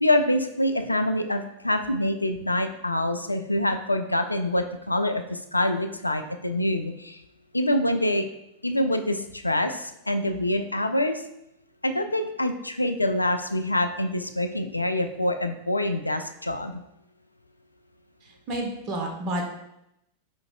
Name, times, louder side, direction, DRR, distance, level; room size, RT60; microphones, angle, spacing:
voice 1, 0.0-7.2 7.5-8.3 8.6-11.2 11.8-16.8, left 1 dB, 85° left, 8 dB, 0.3 m, -25 dB
voice 2, 18.2-19.4, right 1 dB, 40° right, 1 dB, 1.0 m, -30 dB
5.2 x 3.9 x 2.4 m, 0.82 s
figure-of-eight pair, 90°, 0 cm